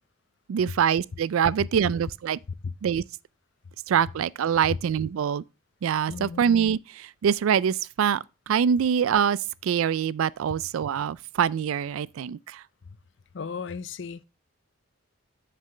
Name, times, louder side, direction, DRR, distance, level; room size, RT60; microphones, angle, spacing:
voice 1, 0.5-2.4 2.8-3.0 3.9-5.4 5.8-9.4 9.6-12.6, right 8 dB, 80° right, 0.3 m, -24 dB
voice 2, 6.1-6.4 13.3-14.2, left 5 dB, 55° left, 0.5 m, -35 dB
7.5 x 6.9 x 3.2 m
head